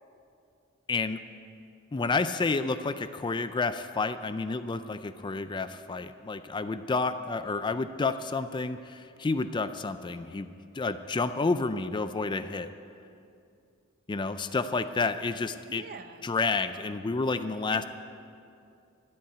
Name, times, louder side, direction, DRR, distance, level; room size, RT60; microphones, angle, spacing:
voice 1, 0.9-1.2 1.9-12.7 14.1-15.8 16.2-17.8, left 3 dB, 20° left, 11 dB, 0.4 m, -30 dB
voice 2, 15.7-16.3 17.7-17.8, right 4 dB, 45° right, 9 dB, 0.7 m, -44 dB
12.5 x 8.6 x 9.1 m, 2.5 s
head